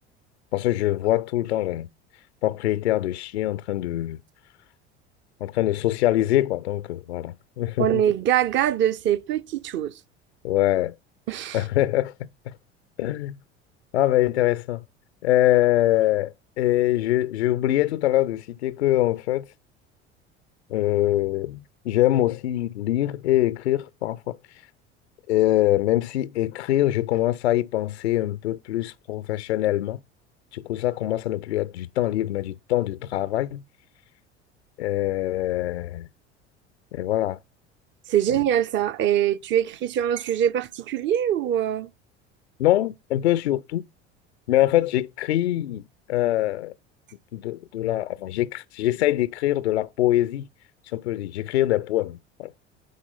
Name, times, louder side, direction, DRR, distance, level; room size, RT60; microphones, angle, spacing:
voice 1, 0.5-1.9 2.4-4.2 5.4-7.9 10.4-10.9 11.5-12.1 13.0-13.3 13.9-14.8 15.2-19.4 20.7-24.6 25.3-30.0 30.5-33.6 34.8-36.1 36.9-37.4 42.6-43.8 44.5-45.8 46.1-46.7 47.3-50.5 50.8-52.5, left 14 dB, 75° left, 0.5 m, -24 dB
voice 2, 7.8-9.9 11.3-11.6 38.1-41.9, right 10 dB, 35° right, 0.6 m, -23 dB
10.0 x 4.3 x 5.6 m
figure-of-eight pair, 70°, 34 cm